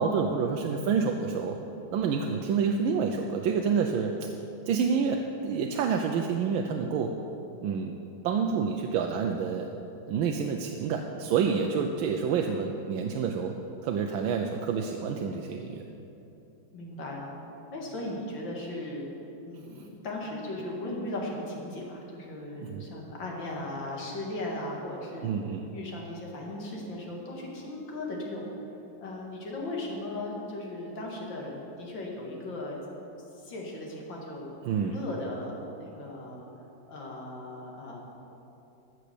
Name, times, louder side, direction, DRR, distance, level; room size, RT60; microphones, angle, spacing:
voice 1, 0.0-1.6 1.9-4.3 4.7-7.1 7.6-7.9 8.2-9.7 10.1-13.5 13.8-15.8 22.6-22.8 25.2-25.6 34.7-34.9, right 6 dB, 90° right, 3 dB, 1.4 m, -28 dB
voice 2, 16.7-17.3 17.7-19.0 19.4-25.3 25.7-28.5 29.0-32.8 33.4-36.5 36.9-38.0, left 1 dB, 65° left, -2 dB, 2.5 m, -37 dB
14.5 x 6.3 x 6.8 m, 3.0 s
omnidirectional pair, 2.2 m